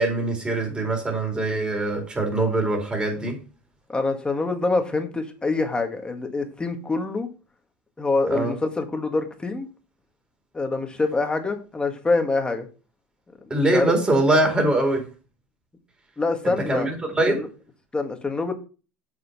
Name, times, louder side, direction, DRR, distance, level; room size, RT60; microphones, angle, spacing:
voice 1, 0.0-3.4 8.3-8.5 13.5-15.0 16.7-17.4, right 2 dB, 15° right, 4.1 m, -23 dB
voice 2, 3.9-7.3 8.0-9.7 10.5-12.7 13.5-13.9 16.2-16.9 17.3-17.5 17.9-18.5, left 3 dB, 15° left, 1.9 m, -25 dB
7.8 x 4.9 x 5.9 m
supercardioid pair, 100°, 6 cm